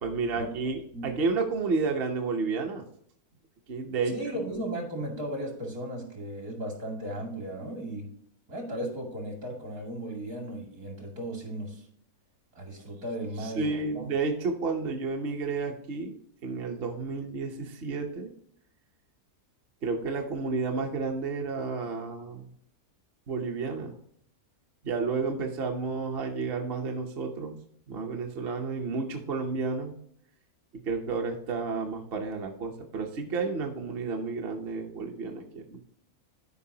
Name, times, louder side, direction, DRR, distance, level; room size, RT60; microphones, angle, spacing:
voice 1, 0.0-2.8 3.7-4.1 13.4-16.1 16.4-18.3 19.8-22.5 23.3-23.9 24.8-27.6 27.9-29.9 30.9-35.8, right 4 dB, 45° right, 3 dB, 0.9 m, -31 dB
voice 2, 4.1-8.1 8.5-11.8 12.5-14.1, right 1 dB, 65° right, 0 dB, 2.9 m, -36 dB
12.5 x 5.2 x 2.8 m, 0.69 s
omnidirectional pair, 1.6 m